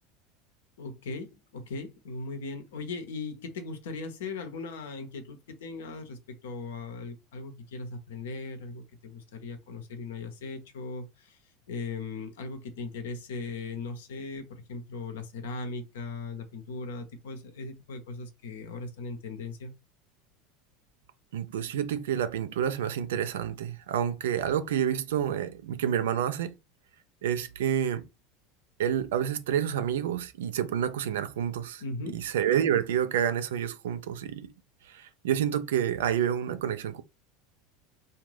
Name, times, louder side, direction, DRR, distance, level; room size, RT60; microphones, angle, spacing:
voice 1, 0.8-11.4 11.7-19.7 31.8-32.3, left 3 dB, 75° left, 0.7 m, -38 dB
voice 2, 21.3-26.5 27.2-28.0 28.8-31.8 32.1-34.5 34.9-37.0, right 9 dB, 75° right, 0.3 m, -29 dB
2.5 x 2.1 x 3.2 m
hypercardioid pair, 80°, 0 cm